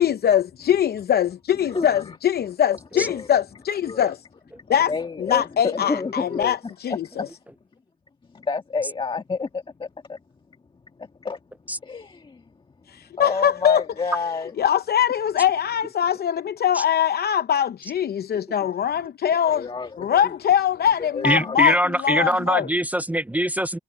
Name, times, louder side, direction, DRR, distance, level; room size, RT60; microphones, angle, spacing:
voice 1, 0.0-4.2 4.7-4.9 5.2-7.3 12.9-13.8 14.6-19.7 20.0-22.7, left 9 dB, 50° left, 0.8 m, -22 dB
voice 2, 1.7-2.2 2.9-3.3 3.8-4.1 4.6-6.5 6.9-7.3 8.3-10.2 11.0-11.4 11.8-12.4 13.2-14.5 19.4-20.3 21.0-21.6, left 4 dB, 25° left, 1.6 m, -30 dB
voice 3, 21.2-23.8, right 1 dB, 10° right, 0.5 m, -22 dB
cardioid pair, 90°, 20 cm